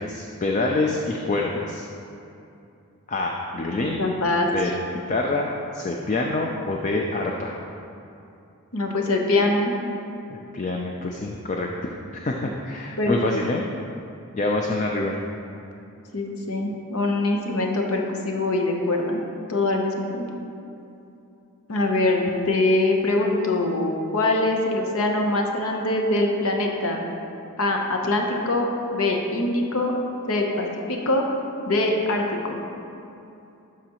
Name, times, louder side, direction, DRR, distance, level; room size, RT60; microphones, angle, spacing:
voice 1, 0.0-1.9 3.1-4.0 4.4-4.7 5.1-7.5 10.3-11.7 12.1-13.6 14.3-15.2, left 2 dB, 35° left, 0 dB, 0.4 m, -26 dB
voice 2, 4.0-4.5 8.7-9.8 13.0-13.1 16.1-19.2 19.5-20.3 21.7-27.1 27.6-28.7 28.9-29.9 30.3-31.2 31.7-32.6, left 2 dB, 75° left, 1 dB, 0.8 m, -23 dB
11.5 x 4.9 x 3.0 m, 2.7 s
head